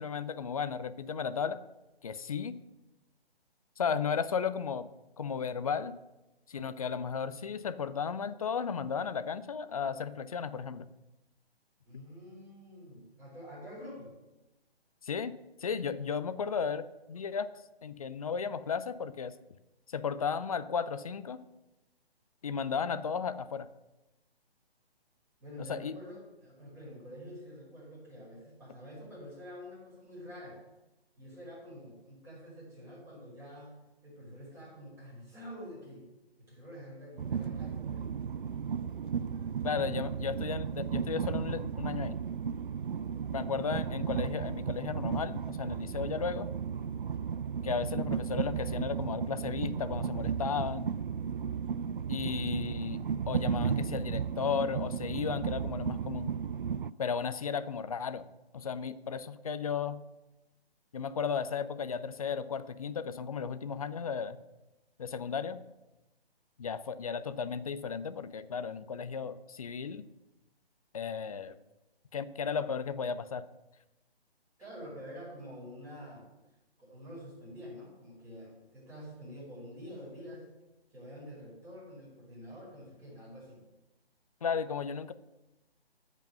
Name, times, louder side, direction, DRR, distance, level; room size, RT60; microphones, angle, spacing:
voice 1, 0.0-1.6 2.0-2.5 3.8-4.9 5.2-5.9 6.5-10.9 15.0-15.3 15.6-17.5 17.8-19.3 19.9-21.4 22.4-23.7 25.7-25.9 39.6-42.2 43.3-46.5 47.6-50.9 52.1-53.0 53.3-56.3 57.0-58.3 58.5-60.0 60.9-64.4 65.0-65.6 66.6-70.1 70.9-71.6 72.1-73.4 84.4-85.1, left 6 dB, 35° left, 13 dB, 0.6 m, -34 dB
voice 2, 11.8-14.1 25.4-30.6 31.2-33.8 34.0-36.1 36.4-38.2 74.6-76.3 76.8-80.5 80.9-83.6, equal, 10° right, -7 dB, 5.2 m, -47 dB
Train, 37.2-56.9, right 7 dB, 55° right, 0.4 m, -34 dB
14.0 x 5.3 x 7.6 m, 1.0 s
figure-of-eight pair, 140°, 31 cm